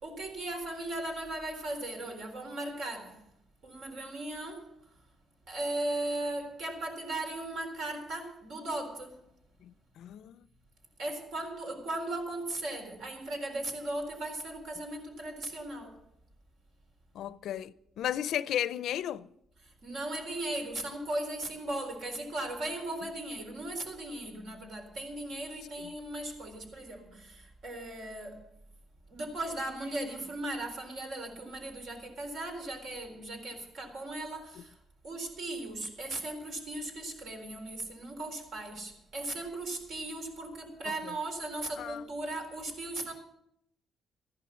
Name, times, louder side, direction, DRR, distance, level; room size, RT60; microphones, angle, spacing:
voice 1, 0.0-3.2 3.6-4.8 5.5-9.2 11.0-16.0 19.6-28.5 29.1-34.8 35.0-43.1, right 2 dB, 70° right, 3.9 m, -37 dB
voice 2, 9.6-10.5 17.1-19.3 40.9-41.1 41.8-42.0, left 11 dB, 75° left, 0.5 m, -35 dB
14.0 x 11.5 x 6.1 m
cardioid pair, 90°, 0 cm